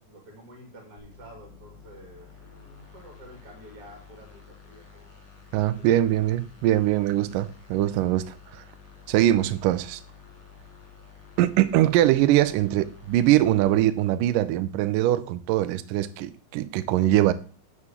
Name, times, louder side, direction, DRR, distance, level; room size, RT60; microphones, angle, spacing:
voice 1, 0.0-5.1 5.5-6.0 7.4-7.5, equal, 30° right, 2.5 m, -50 dB
sound 1, 1.0-13.7, left 6 dB, 35° left, 2.8 m, -50 dB
voice 2, 5.5-8.3 9.1-10.0 11.4-17.3, right 13 dB, 85° right, 1.9 m, -22 dB
6.8 x 6.5 x 7.2 m
omnidirectional pair, 4.5 m